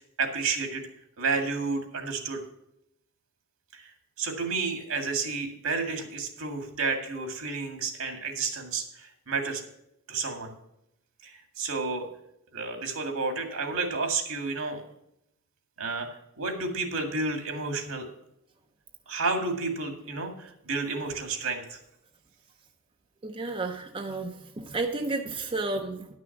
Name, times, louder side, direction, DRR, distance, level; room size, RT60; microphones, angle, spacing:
voice 1, 0.2-0.9 1.2-2.4 3.7-3.9 4.2-9.6 10.1-10.5 11.2-12.1 12.5-14.8 15.8-16.1 16.4-18.1 19.1-21.8, right 4 dB, 75° right, 4 dB, 2.0 m, -31 dB
voice 2, 23.2-26.1, right 3 dB, 25° right, 4 dB, 0.6 m, -32 dB
11.0 x 6.2 x 5.9 m, 0.80 s
head